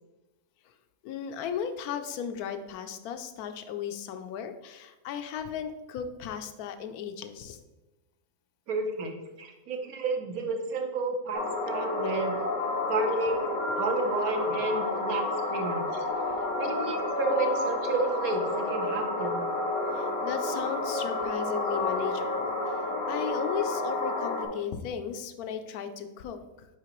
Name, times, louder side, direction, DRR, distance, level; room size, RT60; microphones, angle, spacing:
voice 1, 1.0-7.6 19.9-22.8 23.1-26.7, left 8 dB, 90° left, 8 dB, 1.1 m, -36 dB
voice 2, 8.7-12.4 12.9-13.4 13.7-16.0 16.6-19.4, right 3 dB, 75° right, 3 dB, 1.3 m, -31 dB
sound 1, 11.3-24.5, left 2 dB, 70° left, 1.4 m, -30 dB
6.7 x 4.9 x 3.0 m, 1.1 s
omnidirectional pair, 1.5 m